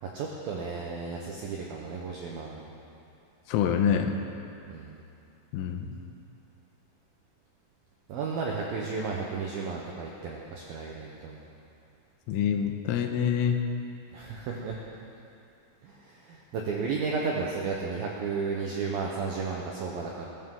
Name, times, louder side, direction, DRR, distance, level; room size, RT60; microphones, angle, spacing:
voice 1, 0.0-2.7 4.7-5.0 8.1-11.5 14.1-14.8 15.8-20.3, right 4 dB, 80° right, -2 dB, 2.1 m, -33 dB
voice 2, 3.5-4.2 5.5-5.9 12.3-13.6, left 8 dB, 80° left, 5 dB, 3.2 m, -26 dB
21.0 x 13.5 x 3.9 m, 2.6 s
omnidirectional pair, 5.8 m